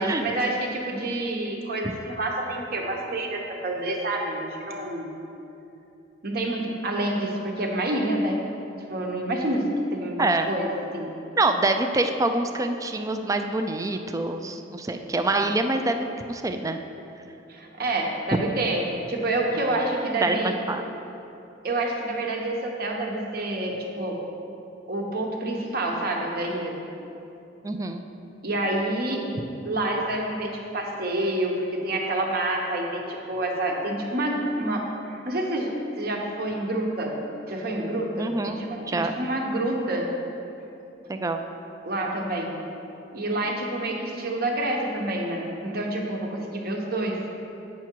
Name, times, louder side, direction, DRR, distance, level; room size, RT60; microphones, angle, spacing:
voice 1, 0.0-5.1 6.2-8.4 8.9-9.6 9.9-11.1 17.5-18.8 19.1-20.5 21.6-24.2 24.9-26.8 28.4-29.3 29.6-34.8 35.2-35.7 36.0-37.2 37.5-40.1 41.8-42.5 43.1-47.2, right 1 dB, 55° right, 0 dB, 1.0 m, -28 dB
voice 2, 11.4-16.8 20.2-20.8 27.6-28.0 38.2-39.1 41.1-41.4, right 2 dB, 20° right, 7 dB, 0.4 m, -26 dB
8.5 x 5.9 x 4.5 m, 2.8 s
head